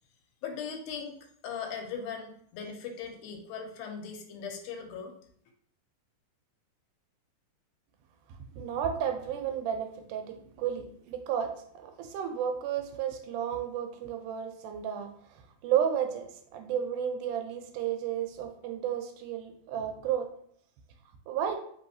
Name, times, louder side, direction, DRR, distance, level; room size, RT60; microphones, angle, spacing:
voice 1, 0.4-1.2 1.4-5.1, left 6 dB, 80° left, 3 dB, 2.0 m, -39 dB
voice 2, 8.5-11.5 11.8-20.3 21.3-21.6, right 9 dB, 80° right, 5 dB, 2.1 m, -32 dB
4.1 x 3.9 x 2.7 m, 0.64 s
omnidirectional pair, 3.7 m